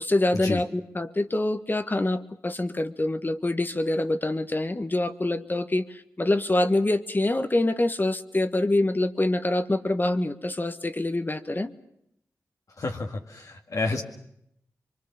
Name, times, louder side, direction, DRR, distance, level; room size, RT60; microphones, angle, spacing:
voice 1, 0.0-11.7, left 2 dB, 30° left, 10 dB, 1.5 m, -25 dB
voice 2, 12.8-14.0, left 3 dB, 60° left, 2 dB, 2.0 m, -30 dB
24.5 x 23.5 x 7.3 m, 0.76 s
cardioid pair, 40°, 6 cm